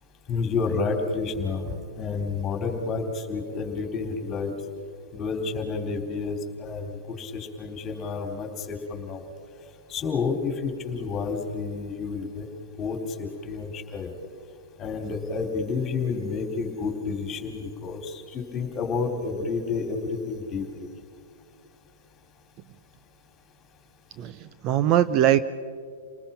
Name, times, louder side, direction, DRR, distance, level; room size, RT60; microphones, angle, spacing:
voice 1, 0.3-4.5 5.1-9.2 9.9-12.5 12.8-14.1 14.8-20.9, left 4 dB, 25° left, 5 dB, 3.7 m, -30 dB
voice 2, 24.2-25.4, right 11 dB, 35° right, 13 dB, 0.7 m, -21 dB
29.5 x 19.5 x 5.8 m, 2.2 s
hypercardioid pair, 120°, 0 cm